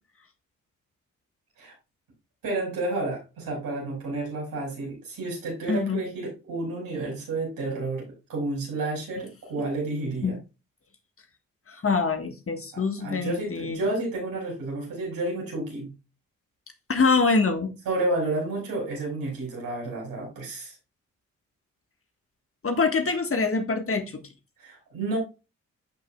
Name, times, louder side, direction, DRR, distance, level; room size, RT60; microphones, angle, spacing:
voice 1, 2.4-10.4 12.7-15.9 17.8-20.8 24.6-25.2, right 2 dB, 80° right, 5.0 m, -31 dB
voice 2, 5.7-6.0 10.2-10.3 11.7-13.8 16.9-17.7 22.6-24.2, left 4 dB, 40° left, 1.5 m, -24 dB
12.0 x 5.4 x 2.3 m
supercardioid pair, 45°, 34 cm